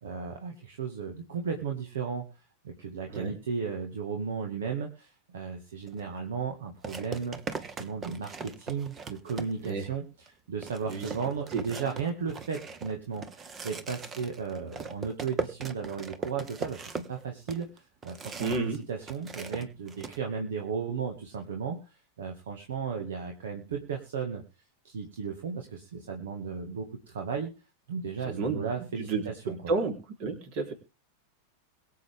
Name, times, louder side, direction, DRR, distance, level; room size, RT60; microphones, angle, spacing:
voice 1, 0.0-2.2 2.6-24.4 24.8-27.5 27.9-29.7, right 6 dB, 60° right, 2 dB, 2.0 m, -35 dB
sound 1, 5.9-6.0 6.8-9.8 10.3-10.4 10.6-18.8 19.0-20.2, right 5 dB, 20° right, 1.3 m, -39 dB
voice 2, 18.4-18.8 28.2-28.6 29.0-29.9 30.2-30.7, right 4 dB, 45° right, 4 dB, 4.0 m, -31 dB
22.5 x 7.6 x 3.7 m, 0.31 s
figure-of-eight pair, 90°, 0 cm